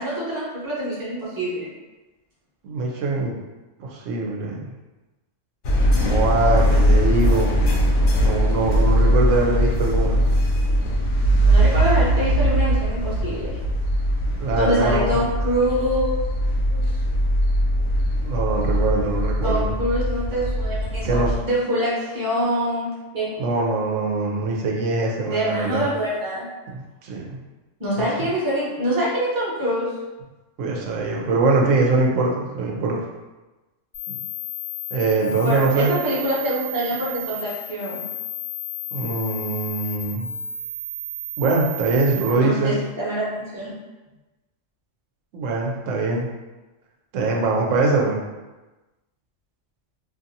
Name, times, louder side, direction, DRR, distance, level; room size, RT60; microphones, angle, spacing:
voice 1, 0.0-1.7 11.4-13.6 14.6-16.2 16.7-16.9 19.4-22.9 23.1-23.3 25.2-26.5 27.8-29.9 35.4-38.0 42.3-43.7 47.8-47.9, equal, 20° right, -7 dB, 0.7 m, -25 dB
voice 2, 2.6-3.3 3.8-4.7 6.0-7.6 8.2-10.2 14.4-15.1 18.2-19.7 21.0-21.3 23.4-25.9 26.7-27.4 28.0-28.1 30.6-33.0 34.1-34.2 34.9-35.9 38.9-40.3 41.4-42.8 45.3-46.3 47.1-48.2, right 3 dB, 85° right, -1 dB, 0.9 m, -22 dB
sound 1, 5.6-21.4, equal, 80° left, 0.9 m, -20 dB
sound 2, 33.9-42.3, left 1 dB, 50° left, 0.9 m, -33 dB
2.6 x 2.5 x 2.6 m, 1.1 s
omnidirectional pair, 1.3 m